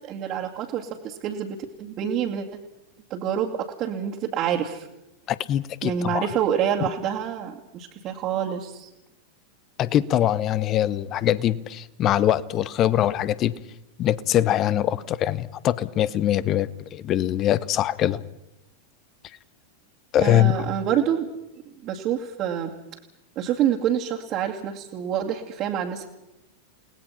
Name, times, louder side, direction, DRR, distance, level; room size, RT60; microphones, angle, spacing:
voice 1, 0.0-2.5 3.1-4.9 5.8-8.9 20.2-21.3 21.8-22.7 23.4-26.1, right 9 dB, 35° right, 2.3 m, -27 dB
voice 2, 5.3-6.3 9.8-13.5 14.0-18.2 20.1-20.6, left 12 dB, 35° left, 0.9 m, -23 dB
29.5 x 19.0 x 5.8 m
figure-of-eight pair, 90°, 0 cm